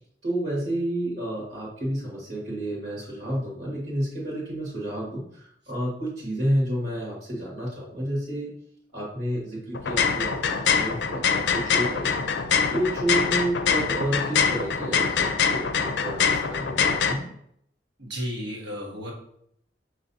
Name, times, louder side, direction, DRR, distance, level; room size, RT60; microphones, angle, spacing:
voice 1, 0.2-8.6 8.9-17.3, right 1 dB, 70° right, -5 dB, 1.7 m, -30 dB
sound 1, 9.7-17.1, left 6 dB, 80° left, 0.4 m, -24 dB
voice 2, 18.0-19.1, equal, 85° right, -2 dB, 1.4 m, -33 dB
5.8 x 3.1 x 2.7 m, 0.69 s
head